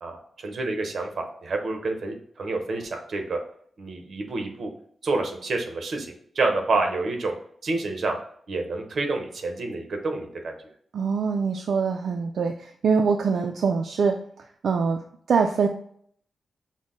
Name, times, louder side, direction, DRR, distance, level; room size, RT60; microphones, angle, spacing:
voice 1, 0.0-3.4 3.8-4.7 5.0-7.3 7.6-8.2 8.5-10.5, right 3 dB, 55° right, 4 dB, 0.8 m, -28 dB
voice 2, 10.9-14.2 14.6-15.0 15.3-15.7, right 5 dB, 75° right, 3 dB, 0.3 m, -23 dB
6.1 x 2.1 x 3.7 m, 0.63 s
wide cardioid pair, 170°, 0 cm